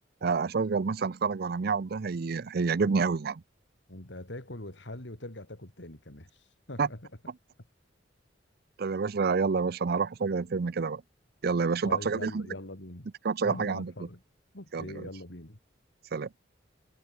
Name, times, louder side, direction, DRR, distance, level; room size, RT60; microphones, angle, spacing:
voice 1, 0.2-3.4 6.8-6.9 8.8-11.0 11.4-12.5 13.2-13.9 14.7-15.1 16.1-16.3, right 5 dB, 55° right, 0.5 m, -28 dB
voice 2, 3.9-6.3 6.7-7.1 11.8-13.1 13.4-14.2 14.5-15.6, left 1 dB, 75° left, 3.5 m, -42 dB
head